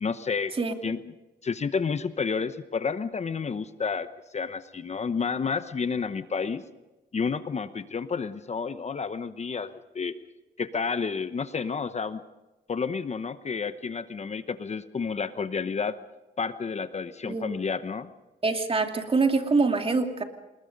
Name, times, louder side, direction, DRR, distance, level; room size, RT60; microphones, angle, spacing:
voice 1, 0.0-0.5 0.8-1.0 1.4-4.1 4.3-6.6 7.1-10.2 10.6-12.2 12.7-16.0 16.4-18.1, left 5 dB, 35° left, 12 dB, 1.0 m, -30 dB
voice 2, 18.4-20.2, right 4 dB, 30° right, 5 dB, 2.6 m, -25 dB
27.0 x 20.5 x 5.3 m, 1.1 s
cardioid pair, 85°, 18 cm